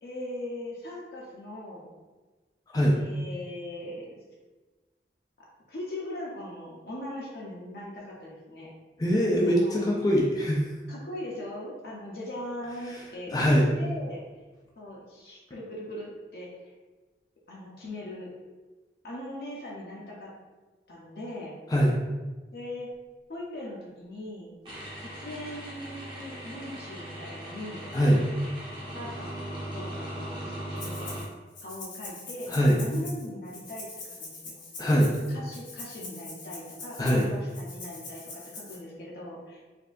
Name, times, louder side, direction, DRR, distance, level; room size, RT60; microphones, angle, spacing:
voice 1, 0.0-1.9 2.9-4.2 5.4-8.7 9.5-9.9 10.9-14.2 14.8-16.5 17.5-18.3 19.0-20.3 20.9-21.6 22.5-22.9 23.3-24.5 25.0-27.9 28.9-31.1 31.6-34.6 35.3-39.6, left 1 dB, 60° left, -4 dB, 0.7 m, -40 dB
voice 2, 9.0-10.6 13.3-13.7 21.7-22.0 27.9-28.2 32.5-32.8 34.8-35.1 37.0-37.2, equal, 20° left, -3 dB, 0.4 m, -22 dB
sound 1, 24.7-31.2, right 1 dB, 25° right, 0.8 m, -39 dB
Rattle (instrument), 30.8-31.3 31.5-38.8, left 3 dB, 90° left, 1.0 m, -43 dB
4.2 x 2.7 x 2.5 m, 1.2 s
head